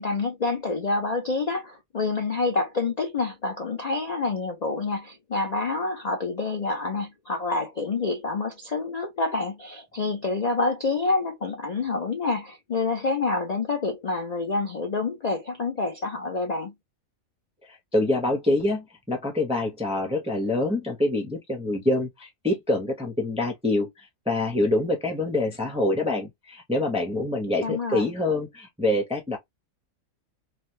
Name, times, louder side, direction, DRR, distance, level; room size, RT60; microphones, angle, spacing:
voice 1, 0.0-16.7 27.6-28.0, left 3 dB, 55° left, 0.4 m, -27 dB
voice 2, 17.6-29.4, left 2 dB, 10° right, 0.4 m, -26 dB
3.2 x 2.3 x 2.7 m
omnidirectional pair, 1.4 m